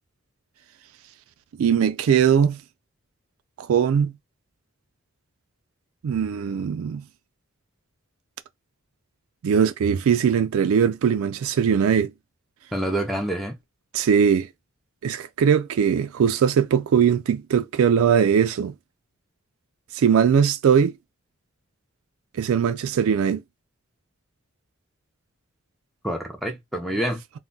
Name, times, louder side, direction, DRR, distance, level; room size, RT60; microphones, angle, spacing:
voice 1, 1.6-2.6 3.6-4.1 6.0-7.0 9.4-12.1 13.9-14.5 15.0-18.7 19.9-20.9 22.4-23.4, right 7 dB, 75° right, 0.3 m, -20 dB
voice 2, 12.7-13.6 26.0-27.2, right 1 dB, ahead, 0.5 m, -27 dB
2.2 x 2.1 x 3.8 m
head